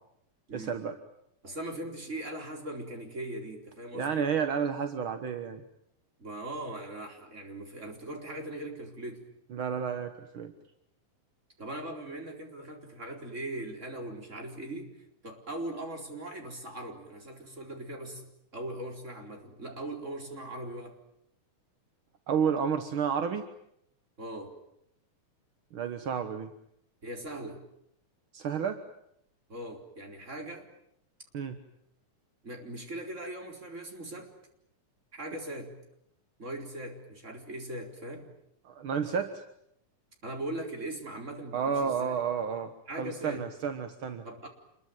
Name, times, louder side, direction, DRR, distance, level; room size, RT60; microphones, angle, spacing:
voice 1, 0.5-1.0 3.9-5.6 9.5-10.5 22.3-23.5 25.7-26.5 28.3-28.8 31.3-31.6 38.6-39.4 41.5-42.7 43.0-44.2, right 7 dB, 55° right, 8 dB, 1.6 m, -31 dB
voice 2, 1.4-4.3 6.2-9.2 11.6-14.9 15.2-18.3 18.5-21.0 24.2-24.6 27.0-27.6 29.5-30.7 32.4-34.3 35.1-35.7 36.4-38.3 40.2-42.2 42.9-43.4 44.2-44.5, right 1 dB, 20° right, 3 dB, 4.4 m, -40 dB
27.5 x 22.5 x 9.3 m, 0.76 s
omnidirectional pair, 3.7 m